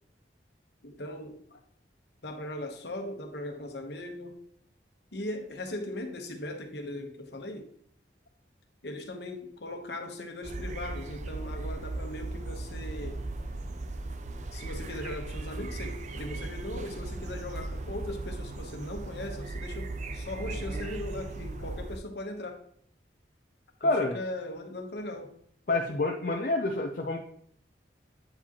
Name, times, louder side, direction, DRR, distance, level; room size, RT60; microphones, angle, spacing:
voice 1, 0.8-1.6 2.2-4.4 5.1-7.7 8.8-13.2 14.5-22.6 23.8-25.3, left 1 dB, 65° left, 4 dB, 1.0 m, -39 dB
sound 1, 10.4-22.0, right 2 dB, 40° right, 0.4 m, -37 dB
voice 2, 23.8-24.2 25.7-27.2, left 2 dB, 50° left, 2 dB, 0.5 m, -28 dB
8.7 x 4.7 x 2.9 m, 0.63 s
head